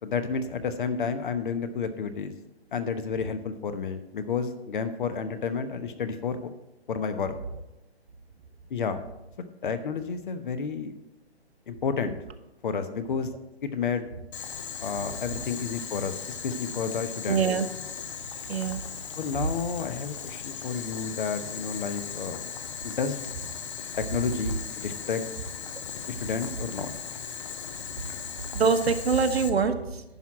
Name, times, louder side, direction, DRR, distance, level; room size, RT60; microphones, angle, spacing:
voice 1, 0.0-2.3 2.7-6.5 6.9-7.3 8.7-9.0 9.6-10.9 11.7-12.2 12.6-13.3 13.6-14.0 14.8-17.4 19.2-22.5 22.8-23.2 24.0-25.2 26.1-26.9, left 5 dB, 50° left, 10 dB, 1.0 m, -31 dB
Boiling, 14.3-29.5, left 7 dB, 30° left, 0.7 m, -38 dB
voice 2, 17.3-17.7 18.5-18.8 28.5-30.0, right 5 dB, 70° right, 7 dB, 1.2 m, -24 dB
11.0 x 4.7 x 7.4 m, 0.95 s
figure-of-eight pair, 140°, 32 cm